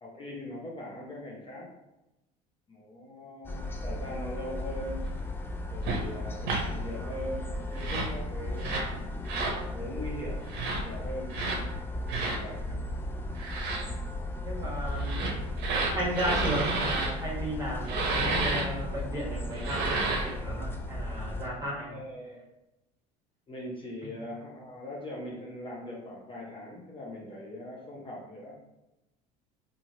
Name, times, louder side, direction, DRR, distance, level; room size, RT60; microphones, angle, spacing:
voice 1, 0.0-1.7 2.7-5.0 5.7-9.0 9.7-10.4 10.8-11.3 12.1-12.8 21.8-22.4 23.5-28.5, left 1 dB, 25° left, -4 dB, 0.7 m, -41 dB
sound 1, 3.4-21.5, left 1 dB, 10° left, 0.3 m, -35 dB
sound 2, 5.8-6.0 6.4-6.6 7.7-8.1 8.6-8.9 9.3-9.6 10.5-10.8 11.3-11.6 12.1-12.4 13.4-13.8 14.9-17.1 17.9-18.7 19.5-20.3, right 3 dB, 60° right, 0.7 m, -31 dB
voice 2, 14.4-15.2 15.9-21.9, right 1 dB, 20° right, -4 dB, 1.3 m, -34 dB
2.8 x 2.4 x 2.8 m, 0.94 s
hypercardioid pair, 80°, 19 cm